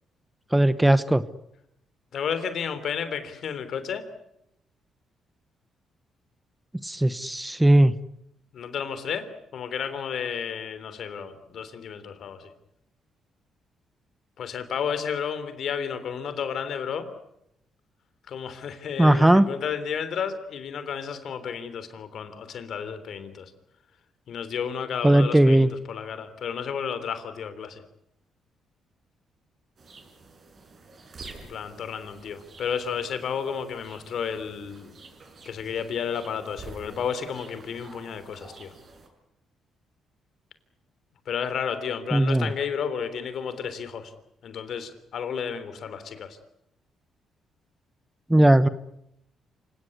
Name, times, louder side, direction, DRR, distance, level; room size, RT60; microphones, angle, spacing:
voice 1, 0.5-1.2 6.8-7.9 19.0-19.4 25.0-25.7 42.1-42.5 48.3-48.7, right 1 dB, 10° right, 14 dB, 1.0 m, -18 dB
voice 2, 2.1-4.1 8.5-12.5 14.4-17.1 18.3-23.5 24.3-27.8 31.5-35.0 35.4-38.7 41.2-44.1 44.4-46.4, left 7 dB, 65° left, 12 dB, 3.3 m, -32 dB
sound 1, 29.8-39.1, right 3 dB, 45° right, 6.6 m, -48 dB
27.5 x 17.5 x 9.7 m, 0.80 s
cardioid pair, 90°, 0 cm